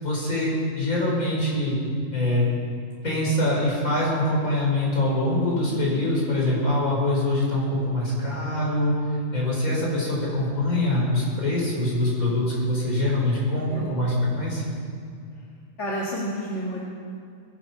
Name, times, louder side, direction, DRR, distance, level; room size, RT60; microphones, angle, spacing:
voice 1, 0.0-1.8 2.1-2.5 3.0-8.9 9.3-14.6, left 1 dB, 75° left, -5 dB, 5.6 m, -24 dB
voice 2, 5.7-6.1 13.7-14.0 15.8-16.8, equal, 55° left, -5 dB, 2.5 m, -31 dB
21.0 x 12.0 x 5.6 m, 2.4 s
omnidirectional pair, 1.5 m